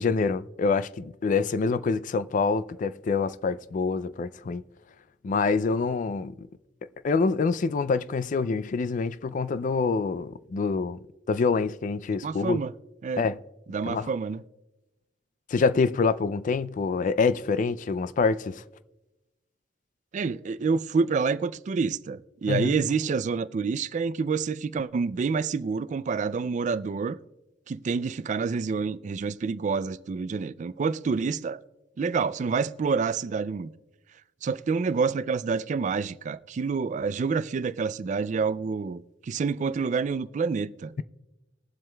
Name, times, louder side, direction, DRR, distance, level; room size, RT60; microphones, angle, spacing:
voice 1, 0.0-4.6 5.2-6.5 7.0-11.0 11.3-12.6 13.2-13.4 13.9-14.1 15.5-18.6 22.5-22.8, left 4 dB, 45° left, 0.3 m, -26 dB
voice 2, 12.2-12.7 13.0-13.2 13.7-14.4 20.1-27.2 27.7-31.6 32.0-33.7 34.4-40.9, right 5 dB, 45° right, 0.3 m, -28 dB
21.0 x 7.6 x 2.3 m
head